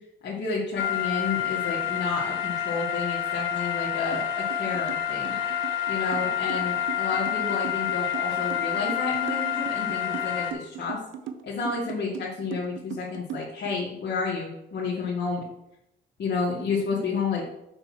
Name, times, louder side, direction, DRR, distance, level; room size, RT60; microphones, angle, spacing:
voice 1, 0.2-5.3 5.9-11.0 11.4-15.4 16.2-17.5, left 4 dB, 60° left, -5 dB, 2.0 m, -30 dB
sound 1, 0.8-10.5, left 10 dB, 85° left, 1.4 m, -28 dB
sound 2, 4.1-4.2 4.5-13.7, right 8 dB, 75° right, 0.9 m, -38 dB
6.6 x 6.1 x 6.1 m, 0.85 s
cardioid pair, 90°, 20 cm